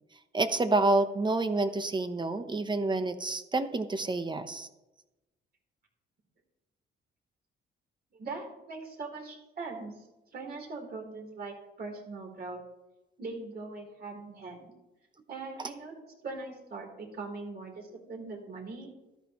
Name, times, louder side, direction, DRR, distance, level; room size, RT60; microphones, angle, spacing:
voice 1, 0.3-4.7, right 2 dB, 25° right, 10 dB, 1.0 m, -28 dB
voice 2, 8.1-10.0 10.3-12.6 13.2-14.7 15.3-15.9 16.2-18.9, right 3 dB, 50° right, 1 dB, 3.8 m, -41 dB
13.5 x 11.5 x 3.1 m, 1.0 s
cardioid pair, 90°, 20 cm